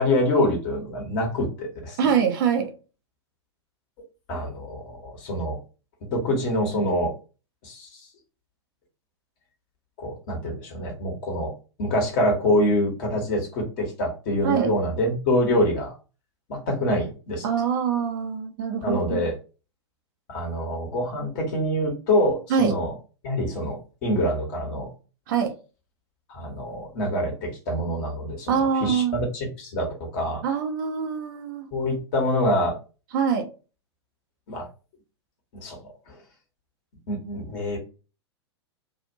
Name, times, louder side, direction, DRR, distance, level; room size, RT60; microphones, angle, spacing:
voice 1, 0.0-2.1 4.3-5.6 6.1-7.1 7.6-8.0 10.0-11.5 11.8-15.9 16.5-17.4 18.8-19.3 20.3-22.9 23.2-24.9 26.3-28.5 28.8-30.4 31.7-32.8 34.5-34.7 35.6-35.8 36.1-36.2 37.1-37.8, left 1 dB, 45° left, 0 dB, 1.3 m, -25 dB
voice 2, 2.0-2.7 14.4-14.7 17.4-19.3 22.5-22.8 25.3-25.5 28.5-29.2 30.4-31.7 33.1-33.5, right 7 dB, 45° right, 6 dB, 0.6 m, -24 dB
2.7 x 2.4 x 2.8 m, 0.33 s
figure-of-eight pair, 100°, 14 cm